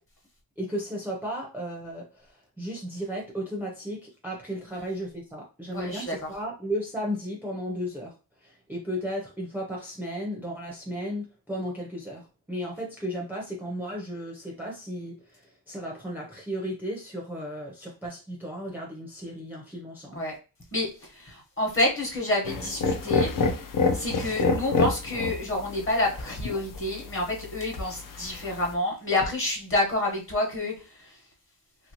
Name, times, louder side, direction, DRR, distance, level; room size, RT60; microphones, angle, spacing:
voice 1, 0.6-8.1 8.4-20.2, equal, 5° right, -2 dB, 0.6 m, -34 dB
voice 2, 5.7-6.3 20.2-20.3 20.7-23.3 23.9-30.7, left 2 dB, 30° left, -1 dB, 1.1 m, -28 dB
sound 1, 22.4-28.7, left 4 dB, 50° left, 0.5 m, -28 dB
2.9 x 2.7 x 2.9 m, 0.32 s
wide cardioid pair, 130°, 42 cm